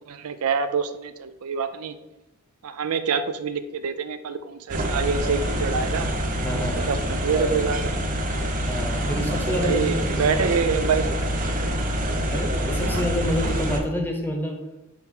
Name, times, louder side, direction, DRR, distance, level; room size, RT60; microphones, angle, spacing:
voice 1, 0.1-1.9 2.6-6.1 6.8-7.9 9.5-11.3 12.8-13.1, right 6 dB, 80° right, 11 dB, 0.4 m, -26 dB
sound 1, 4.7-13.8, equal, 40° right, 0.7 m, -26 dB
voice 2, 6.4-6.9 8.7-10.2 12.3-14.6, equal, 10° left, 2 dB, 0.9 m, -28 dB
6.2 x 4.4 x 3.7 m, 0.96 s
head